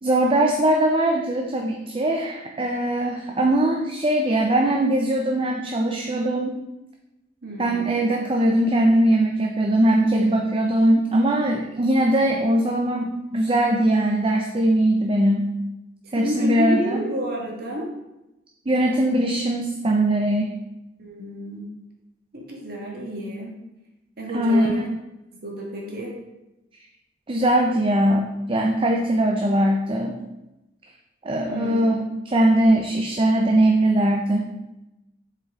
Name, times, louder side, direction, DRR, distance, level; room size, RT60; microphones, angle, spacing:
voice 1, 0.0-6.6 7.6-15.5 16.1-17.0 18.7-20.5 24.3-24.8 27.3-30.2 31.2-32.0 32.3-34.5, right 1 dB, 30° right, 1 dB, 0.5 m, -21 dB
voice 2, 7.4-8.1 16.0-17.9 21.0-21.7 22.3-23.5 24.2-24.9 25.3-26.2 31.5-32.1, equal, 60° right, -1 dB, 1.4 m, -30 dB
7.9 x 4.5 x 3.6 m, 0.95 s
head